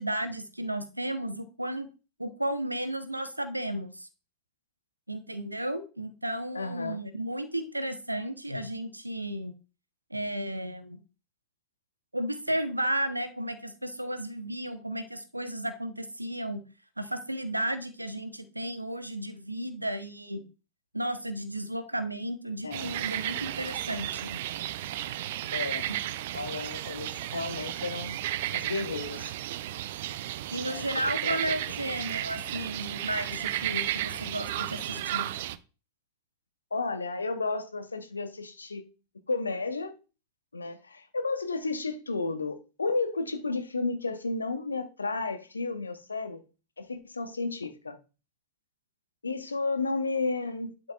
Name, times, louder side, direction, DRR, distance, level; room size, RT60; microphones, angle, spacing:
voice 1, 0.0-1.9 2.2-4.1 5.1-9.5 10.1-11.0 12.1-16.6 17.0-20.4 20.9-24.4 25.9-26.0 30.5-35.3, right 1 dB, 85° right, 0.9 m, -33 dB
voice 2, 6.5-7.0 22.6-22.9 25.5-25.9 26.3-28.2 28.5-29.3 30.6-31.1 36.7-38.9 39.3-39.9 40.5-46.4 46.8-48.0 49.2-50.9, left 3 dB, 75° left, 0.9 m, -32 dB
sound 1, 22.7-35.6, right 13 dB, 55° right, 0.4 m, -34 dB
11.0 x 5.7 x 2.4 m
figure-of-eight pair, 90°, 0 cm